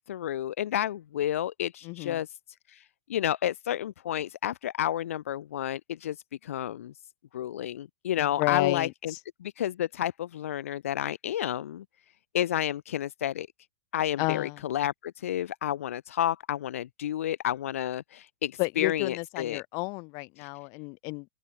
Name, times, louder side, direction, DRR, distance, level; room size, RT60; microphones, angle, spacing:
voice 1, 0.1-2.3 2.7-2.8 3.1-6.2 6.4-6.9 7.3-9.1 9.4-11.8 12.3-13.5 13.9-19.6 20.4-20.5, left 11 dB, 85° left, 0.6 m, -30 dB
voice 2, 1.8-2.2 8.2-9.2 14.2-14.6 18.6-21.3, left 32 dB, 45° left, 4.5 m, -31 dB
open air
hypercardioid pair, 130°, 7 cm